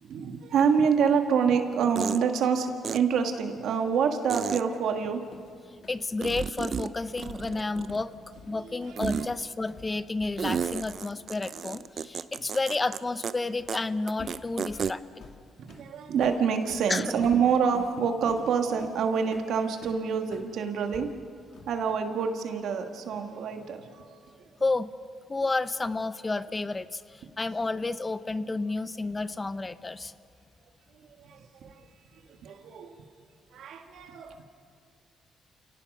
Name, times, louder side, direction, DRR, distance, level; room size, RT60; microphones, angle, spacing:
voice 1, 0.0-5.3 8.6-8.8 15.6-21.1 21.7-24.0 31.2-31.7 32.4-32.9 33.5-34.4, right 6 dB, 75° right, 6 dB, 1.8 m, -27 dB
sound 1, 1.1-1.2 2.0-2.2 2.8-3.0 4.3-4.6 6.2-6.9 7.2-8.1 9.0-9.3 10.4-13.0 13.2-13.3 13.7-13.8 14.1-14.9, right 7 dB, 50° right, 0.6 m, -32 dB
sound 2, 4.9-11.2 11.4-11.6 13.6-13.8 14.2-20.5 20.9-21.9, left 4 dB, 60° left, 2.2 m, -49 dB
voice 2, 5.9-8.1 8.5-15.2 16.9-17.1 24.6-24.9 25.3-30.1, left 3 dB, 25° left, 14 dB, 0.7 m, -31 dB
29.0 x 17.5 x 5.5 m, 2.2 s
cardioid pair, 90°, 0 cm